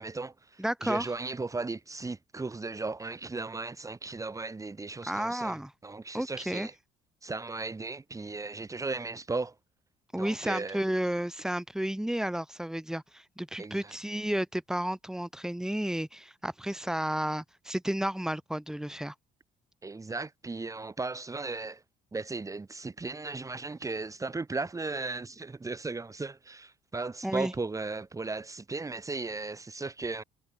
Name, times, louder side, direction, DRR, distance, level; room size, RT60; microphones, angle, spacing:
voice 1, 0.0-6.7 7.2-9.5 10.1-10.8 13.6-13.9 19.8-21.8 22.1-30.2, right 3 dB, 20° right, 4.5 m, -36 dB
voice 2, 0.6-1.1 5.1-5.7 6.1-6.7 10.1-19.1 27.2-27.5, right 1 dB, 5° right, 5.4 m, -32 dB
cardioid pair, 110°, 17 cm